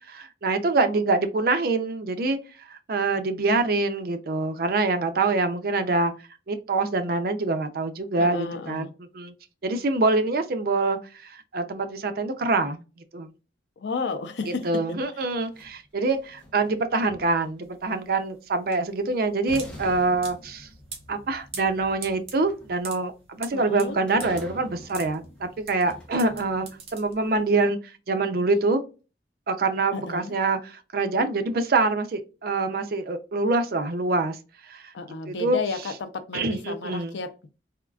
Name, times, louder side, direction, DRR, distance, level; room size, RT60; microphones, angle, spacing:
voice 1, 0.1-2.4 2.7-6.1 6.5-8.9 9.1-9.3 9.6-12.8 13.1-13.3 14.6-20.7 21.1-28.8 29.5-34.4 34.7-34.8 35.3-35.6 36.3-37.2, right 3 dB, 55° right, 0.5 m, -25 dB
voice 2, 8.2-8.9 13.8-14.7 15.1-15.2 23.5-24.0 29.9-30.3 34.9-37.5, left 4 dB, 80° left, 0.5 m, -33 dB
sound 1, 15.3-17.7 18.9-19.0 19.5-26.9, equal, 5° left, 0.7 m, -45 dB
sound 2, 17.6-27.6, right 4 dB, 35° right, 0.9 m, -43 dB
3.5 x 2.3 x 2.3 m
head